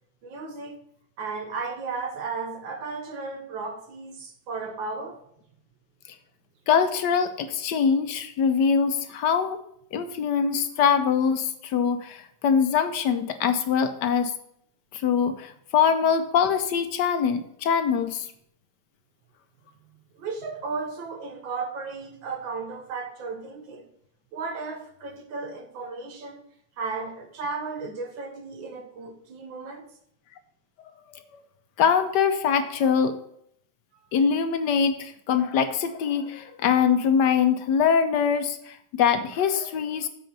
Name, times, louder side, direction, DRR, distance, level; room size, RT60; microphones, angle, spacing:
voice 1, 0.2-0.8 1.2-5.2 20.2-23.9 24.3-26.4 26.8-29.9, right 4 dB, 70° right, 4 dB, 1.8 m, -34 dB
voice 2, 6.7-9.6 9.9-14.3 14.9-18.3 31.8-33.2 34.1-40.1, left 7 dB, 70° left, 9 dB, 1.1 m, -23 dB
7.7 x 4.7 x 5.3 m, 0.70 s
omnidirectional pair, 2.2 m